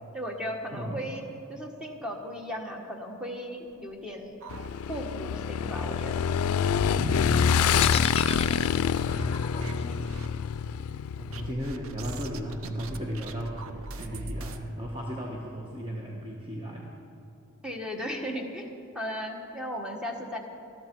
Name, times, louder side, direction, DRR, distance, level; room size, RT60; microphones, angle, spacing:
voice 1, 0.1-1.2 1.5-4.4 4.9-6.2 17.6-20.4, equal, 5° right, 1 dB, 1.3 m, -36 dB
voice 2, 0.7-1.0 7.0-7.9 9.6-10.0 11.2-16.9, equal, 25° right, -2 dB, 1.2 m, -35 dB
sound 1, 3.7-5.3 5.6-5.7 6.1-6.2 6.8-7.7 8.2-9.2 9.6-10.3 11.3-14.6, right 2 dB, 70° right, 0.7 m, -43 dB
Motorcycle / Engine, 4.5-11.5, left 7 dB, 80° left, 0.4 m, -26 dB
sound 2, 7.8-11.9, left 7 dB, 25° left, 0.7 m, -35 dB
20.0 x 13.5 x 4.6 m, 2.8 s
head